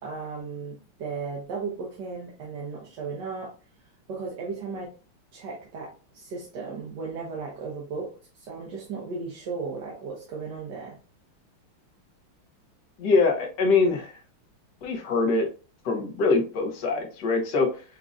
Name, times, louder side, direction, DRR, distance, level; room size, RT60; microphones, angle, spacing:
voice 1, 0.0-3.5 4.1-4.9 5.3-11.0, right 4 dB, 60° right, -3 dB, 1.4 m, -35 dB
voice 2, 13.0-14.1 14.8-15.5 15.8-17.8, left 4 dB, 60° left, 1 dB, 1.4 m, -23 dB
6.1 x 2.7 x 2.4 m, 0.36 s
omnidirectional pair, 2.4 m